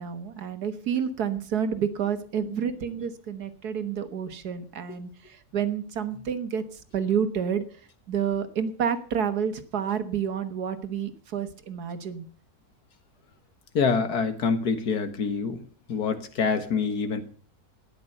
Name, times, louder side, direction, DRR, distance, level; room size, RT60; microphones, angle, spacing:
voice 1, 0.0-5.1 5.5-6.6 6.9-7.6 8.1-12.3, right 7 dB, 90° right, 10 dB, 1.9 m, -29 dB
voice 2, 13.7-15.6 15.9-17.2, left 5 dB, 90° left, 9 dB, 2.0 m, -26 dB
13.0 x 10.0 x 6.6 m, 0.43 s
omnidirectional pair, 1.6 m